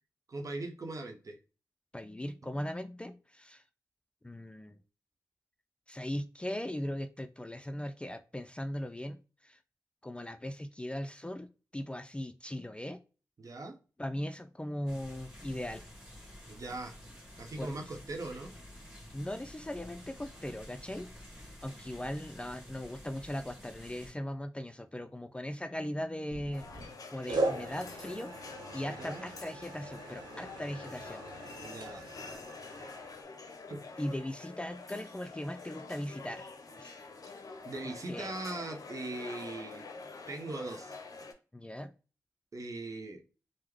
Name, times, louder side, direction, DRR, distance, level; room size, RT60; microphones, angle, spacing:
voice 1, 0.3-1.4 13.4-13.8 16.5-16.9 17.4-18.5 28.9-29.2 31.6-32.1 33.7-33.8 37.6-39.9 40.3-40.9 42.5-43.2, right 2 dB, 50° right, 4 dB, 0.7 m, -40 dB
voice 2, 1.9-3.6 4.2-4.8 5.9-9.6 10.0-13.0 14.0-15.8 17.6-17.7 19.1-21.1 21.6-28.4 28.7-31.2 34.0-37.0 37.8-38.3 41.5-41.9, left 1 dB, 15° left, 9 dB, 0.3 m, -39 dB
sound 1, 14.9-24.1, left 1 dB, 10° right, 1.6 m, -51 dB
sound 2, 26.3-26.9 27.3-33.2, right 2 dB, 85° right, 0.7 m, -39 dB
sound 3, 26.5-41.3, left 4 dB, 55° left, 0.6 m, -47 dB
3.5 x 2.0 x 3.1 m, 0.34 s
cardioid pair, 40°, 7 cm